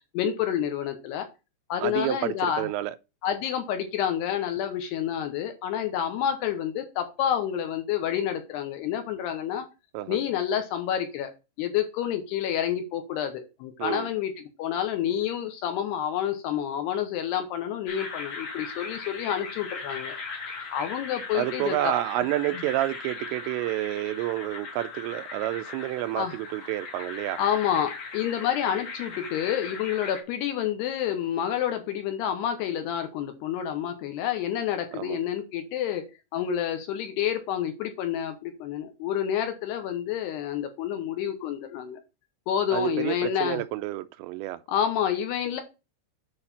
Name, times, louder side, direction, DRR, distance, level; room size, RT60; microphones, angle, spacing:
voice 1, 0.1-1.3 1.7-2.7 3.2-9.7 10.1-11.3 11.6-14.3 14.6-20.2 20.7-21.9 26.2-26.3 27.4-36.0 36.3-42.0 42.5-43.6 44.7-45.6, left 9 dB, 75° left, 2.8 m, -28 dB
voice 2, 1.8-3.0 9.9-10.2 13.8-14.1 21.3-27.4 35.0-35.2 42.7-44.6, right 15 dB, 85° right, 2.7 m, -29 dB
sound 1, 17.9-30.2, left 4 dB, 55° left, 2.0 m, -39 dB
8.8 x 4.7 x 4.1 m
omnidirectional pair, 5.3 m